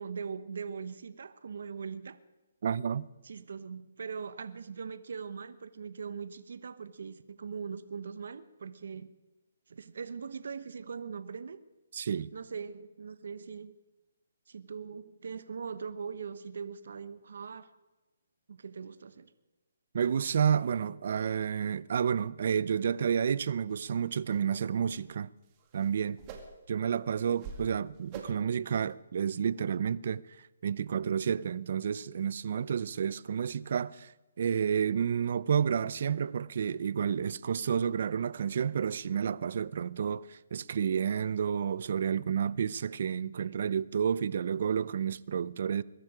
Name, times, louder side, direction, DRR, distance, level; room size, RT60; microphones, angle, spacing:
voice 1, 0.0-2.2 3.2-9.1 9.7-11.6 12.3-13.7 14.5-17.7 18.5-19.3, right 6 dB, 70° right, 1.0 m, -41 dB
voice 2, 2.6-3.1 11.9-12.3 19.9-25.3 25.7-26.2 26.7-30.2 30.6-34.1 34.4-45.8, right 7 dB, 55° right, 0.6 m, -30 dB
sound 1, 23.7-23.8 24.3-24.5 24.8-25.1 25.4-26.7 27.2-27.7 28.1-28.5 28.9-29.0, right 5 dB, 25° right, 2.2 m, -46 dB
22.0 x 12.0 x 5.0 m
hypercardioid pair, 160°, 0 cm